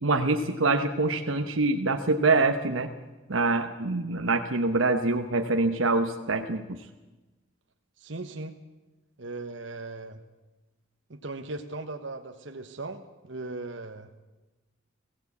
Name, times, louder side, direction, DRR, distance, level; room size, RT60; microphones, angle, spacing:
voice 1, 0.0-2.9 3.3-6.8, right 3 dB, 85° right, 5 dB, 1.1 m, -25 dB
voice 2, 8.0-8.6 9.2-10.2 11.1-14.2, right 2 dB, 65° right, 5 dB, 1.2 m, -38 dB
20.5 x 16.0 x 8.5 m, 1.1 s
head